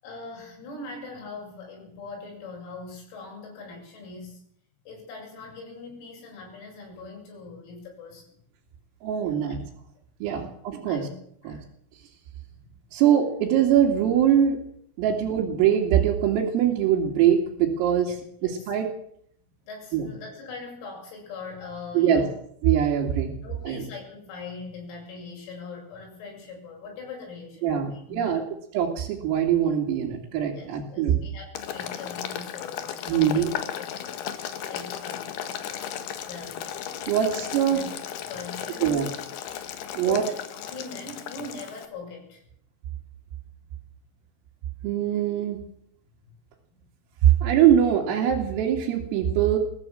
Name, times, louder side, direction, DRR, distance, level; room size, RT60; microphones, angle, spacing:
voice 1, 0.0-4.4 4.9-8.4 9.2-9.4 10.3-10.5 10.9-11.2 11.4-11.6 12.6-12.7 18.1-18.2 18.4-18.7 19.6-22.3 23.4-28.5 30.5-33.5 33.8-34.3 34.7-36.6 37.3-37.4 37.7-37.9 38.3-39.1 40.0-42.5, left 4 dB, 85° left, -1 dB, 10.5 m, -41 dB
voice 2, 9.0-9.6 10.2-11.1 11.5-11.6 12.9-14.6 15.0-18.1 18.4-18.9 19.9-20.1 22.0-22.2 22.6-23.4 23.7-23.9 27.6-28.4 28.7-31.2 33.1-33.5 37.1-37.8 38.8-39.1 40.0-40.2 44.8-45.6 47.2-49.6, right 9 dB, 80° right, -3 dB, 5.3 m, -22 dB
Boiling, 31.5-41.9, left 9 dB, 65° left, 3.0 m, -35 dB
22.5 x 16.5 x 7.8 m, 0.68 s
omnidirectional pair, 6.0 m